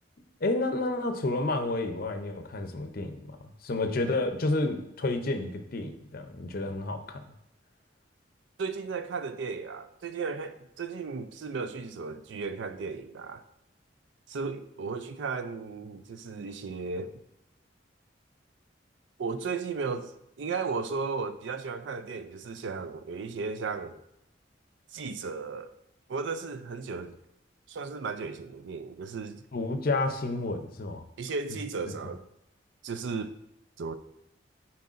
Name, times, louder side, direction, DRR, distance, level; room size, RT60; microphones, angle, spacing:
voice 1, 0.4-3.4 3.6-7.2 29.5-31.0, left 2 dB, 50° left, 0.6 m, -30 dB
voice 2, 8.6-13.4 14.3-17.2 19.2-24.0 24.9-25.7 26.1-27.2 27.7-29.4 31.2-32.2 32.8-33.4 33.8-33.9, right 4 dB, 75° right, 0.4 m, -35 dB
9.3 x 4.4 x 2.5 m
head